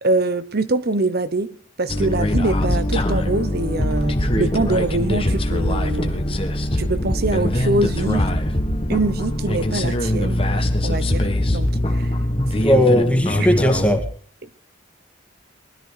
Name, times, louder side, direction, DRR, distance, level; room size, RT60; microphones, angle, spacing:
voice 1, 0.0-1.5 1.8-6.2 6.8-8.3 8.9-10.4 10.8-11.3 11.5-12.1 12.5-12.8 13.4-13.5, right 2 dB, 50° right, 0.9 m, -24 dB
sound 1, 1.9-14.0, left 1 dB, 30° left, 1.6 m, -22 dB
voice 2, 12.3-14.0, equal, 5° left, 2.1 m, -18 dB
20.5 x 13.0 x 4.9 m
head